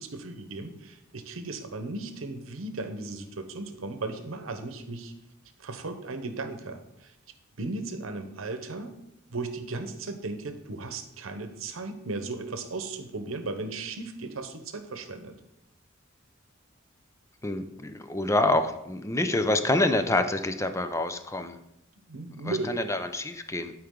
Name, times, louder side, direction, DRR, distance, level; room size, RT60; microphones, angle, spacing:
voice 1, 0.0-5.1 5.6-7.1 7.6-8.9 9.3-15.3 22.1-22.8, right 3 dB, 85° right, 8 dB, 0.9 m, -36 dB
voice 2, 17.4-21.6 22.4-23.7, left 2 dB, 15° left, 9 dB, 0.5 m, -27 dB
11.5 x 4.8 x 3.7 m, 0.85 s
head